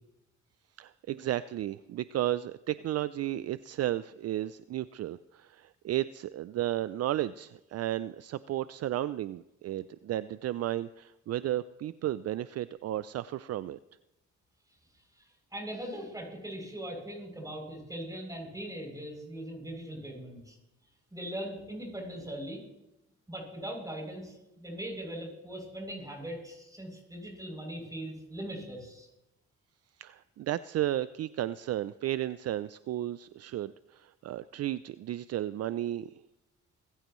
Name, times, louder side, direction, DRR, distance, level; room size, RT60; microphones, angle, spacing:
voice 1, 0.8-13.8 30.0-36.1, right 13 dB, 55° right, 16 dB, 0.4 m, -33 dB
voice 2, 15.1-20.6 21.1-22.6 23.3-29.1, right 1 dB, 10° right, 0 dB, 7.3 m, -40 dB
22.5 x 14.5 x 3.1 m, 0.92 s
cardioid pair, 90°, 30 cm